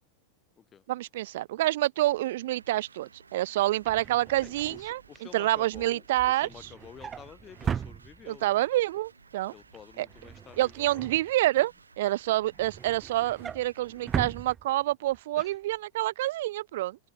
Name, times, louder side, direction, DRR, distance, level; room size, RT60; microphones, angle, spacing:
voice 1, 0.9-5.0 5.3-6.5 8.3-9.5 10.0-10.1 10.6-17.0, right 16 dB, 55° right, 0.4 m, -27 dB
sound 1, 2.0-14.5, right 4 dB, 75° right, 5.3 m, -57 dB
Drawer open or close, 3.6-8.6 9.0-9.3 9.6-11.8 12.2-15.2 15.5-15.7 16.0-16.1, right 7 dB, 20° right, 0.8 m, -38 dB
voice 2, 4.4-8.8 9.5-11.3 15.4-15.5, left 8 dB, 25° left, 5.1 m, -51 dB
open air
figure-of-eight pair, 90°, 0 cm